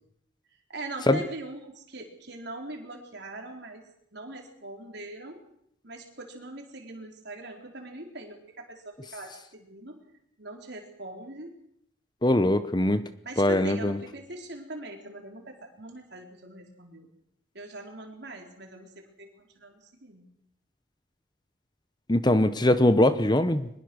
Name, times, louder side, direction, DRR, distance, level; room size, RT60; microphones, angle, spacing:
voice 1, 0.7-5.4 5.8-10.0 10.4-11.5 13.2-17.1 17.5-20.3, right 2 dB, 55° right, 2 dB, 4.5 m, -42 dB
voice 2, 12.2-13.1 13.4-14.0 22.1-23.7, left 1 dB, 20° left, 12 dB, 0.9 m, -22 dB
23.5 x 21.0 x 6.4 m, 0.73 s
head